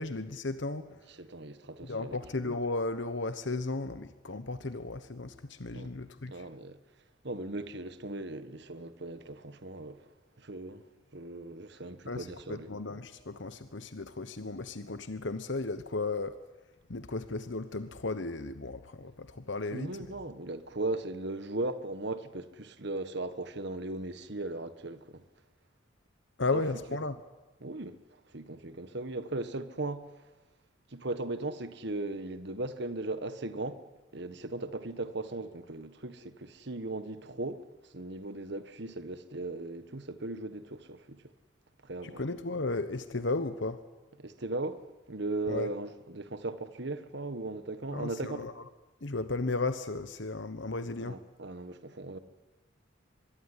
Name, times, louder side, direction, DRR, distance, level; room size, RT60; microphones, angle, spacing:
voice 1, 0.0-1.1 1.8-6.4 12.1-16.4 16.9-20.1 26.4-27.2 42.0-43.8 45.5-45.7 47.9-48.6 49.0-51.2, left 3 dB, 65° left, 1.1 m, -35 dB
voice 2, 1.2-2.2 5.7-5.9 6.3-6.8 7.2-10.1 10.4-10.9 11.1-12.7 19.7-25.2 26.5-26.6 27.6-30.3 30.9-33.8 34.1-41.3 41.8-42.2 44.2-48.5 51.0-52.2, right 2 dB, 60° right, 1.4 m, -38 dB
24.5 x 21.5 x 9.9 m
head